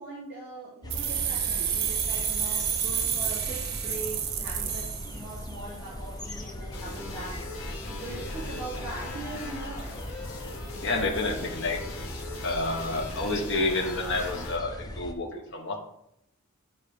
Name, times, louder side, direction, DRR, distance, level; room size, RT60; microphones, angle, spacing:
voice 1, 0.0-7.3 7.9-10.0, right 2 dB, 10° right, -12 dB, 2.7 m, -41 dB
sound 1, 0.8-15.1, left 1 dB, 20° left, 0.6 m, -39 dB
sound 2, 0.9-5.7, right 8 dB, 45° right, 0.8 m, -30 dB
sound 3, 6.7-14.6, left 2 dB, 75° left, 1.7 m, -41 dB
voice 2, 10.8-11.8 12.4-15.8, left 2 dB, 55° left, 1 dB, 1.0 m, -29 dB
8.8 x 4.1 x 5.0 m, 0.77 s
head